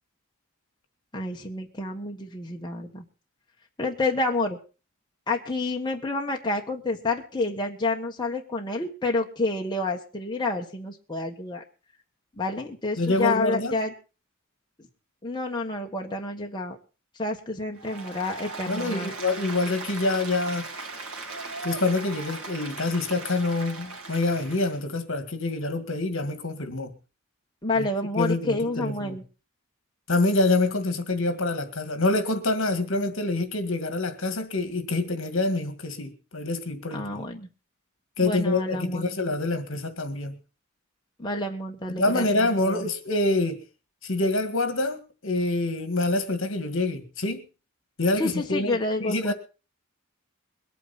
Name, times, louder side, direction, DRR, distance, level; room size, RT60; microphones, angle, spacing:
voice 1, 1.1-3.0 3.8-4.6 5.3-11.6 12.4-13.9 15.2-16.8 17.2-19.1 27.6-29.2 36.9-37.5 38.2-39.1 41.2-42.9 48.1-49.3, left 2 dB, 20° left, 1.4 m, -29 dB
voice 2, 13.0-13.8 18.7-20.7 21.6-26.9 27.8-27.9 28.2-29.2 30.1-37.3 38.2-40.3 41.9-43.6 44.0-47.4 48.0-49.3, left 2 dB, 60° left, 1.9 m, -26 dB
Applause, 17.8-24.8, right 3 dB, 85° right, 2.5 m, -38 dB
22.0 x 9.2 x 4.2 m
head